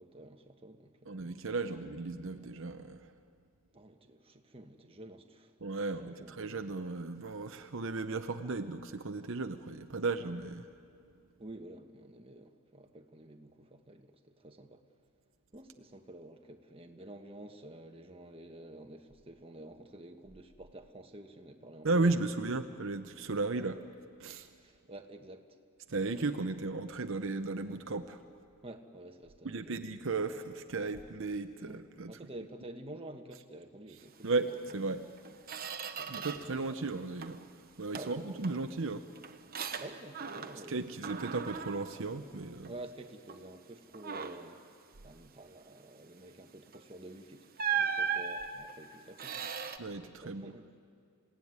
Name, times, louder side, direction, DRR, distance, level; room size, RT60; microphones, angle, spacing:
voice 1, 0.0-1.2 3.7-5.5 6.1-6.4 11.4-14.8 15.5-22.4 24.5-25.5 28.6-29.8 31.6-34.4 36.0-36.8 37.9-38.6 39.8-41.0 42.6-44.6 45.0-49.5 50.2-50.7, right 1 dB, 25° right, 1.4 m, -50 dB
voice 2, 1.1-3.1 5.6-10.7 21.8-23.8 24.2-24.5 25.9-28.2 29.4-32.2 34.2-35.0 36.1-37.4 37.8-39.0 40.7-42.7 49.8-50.5, right 3 dB, 65° right, 0.8 m, -35 dB
Squeak, 34.7-34.8 35.2-36.6 36.9-37.5 37.9-40.7 41.0-42.9 43.3-43.5 43.9-44.6 46.7-46.9 47.6-49.8, right 7 dB, 45° right, 1.1 m, -38 dB
27.5 x 17.0 x 9.6 m
head